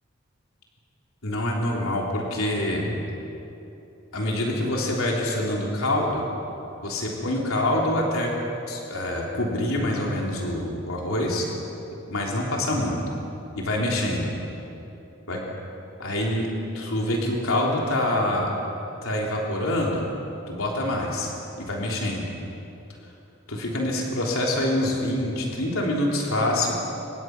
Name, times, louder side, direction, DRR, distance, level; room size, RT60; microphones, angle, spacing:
voice 1, 1.2-2.9 4.1-6.2 6.8-8.3 8.7-11.5 12.1-13.0 13.6-14.3 15.3-15.4 16.0-16.5 16.7-18.5 19.0-20.0 20.5-21.3 21.6-22.3 23.5-26.8, left 1 dB, 80° left, -2 dB, 3.6 m, -25 dB
26.5 x 22.0 x 6.1 m, 2.9 s
head